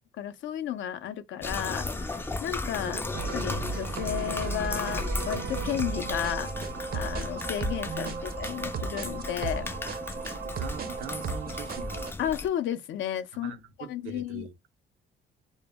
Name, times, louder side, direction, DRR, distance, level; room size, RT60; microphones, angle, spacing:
voice 1, 0.2-3.0 3.3-6.5 6.9-9.7 12.2-14.5, left 10 dB, 75° left, 0.5 m, -33 dB
sound 1, 1.4-12.5, left 2 dB, 10° left, 0.3 m, -35 dB
sound 2, 3.1-12.1, right 5 dB, 50° right, 0.5 m, -35 dB
voice 2, 7.8-8.3 10.3-12.1 13.3-14.7, right 7 dB, 90° right, 0.6 m, -42 dB
2.1 x 2.0 x 3.4 m
cardioid pair, 90°, 20 cm